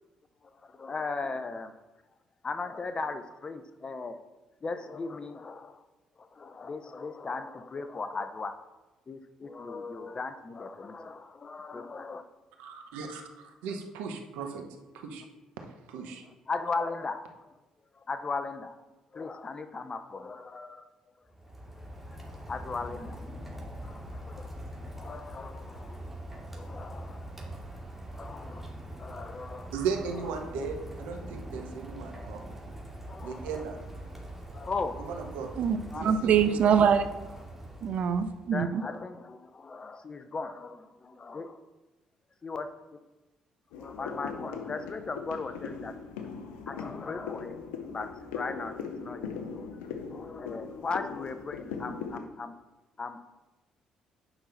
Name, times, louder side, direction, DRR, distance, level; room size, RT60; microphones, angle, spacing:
voice 1, 0.6-1.7 2.4-4.2 4.6-5.8 6.2-8.5 9.1-12.2 16.5-17.5 17.9-18.8 19.1-20.9 22.1-22.2 22.5-23.2 23.8-24.5 25.0-26.0 26.5-27.3 28.1-28.7 29.0-29.7 33.0-33.6 34.5-35.3 35.9-36.1 38.5-41.6 42.4-42.7 43.8-45.9 46.7-47.6 47.9-49.7 50.1-52.5 53.0-53.2, left 4 dB, 35° left, 10 dB, 0.8 m, -37 dB
voice 2, 12.6-14.6 14.9-15.2 15.6-16.2 29.7-32.4 33.2-34.0 35.0-35.6 35.9-36.8, right 5 dB, 80° right, 4 dB, 1.1 m, -37 dB
Rain, 21.3-38.5, right 1 dB, 10° right, 2.3 m, -43 dB
voice 3, 35.6-37.0 37.8-38.8, right 7 dB, 60° right, 10 dB, 0.6 m, -24 dB
sound 1, 43.7-52.2, left 6 dB, 80° left, 0.8 m, -40 dB
8.9 x 5.6 x 4.1 m, 1.1 s
hypercardioid pair, 50°, 3 cm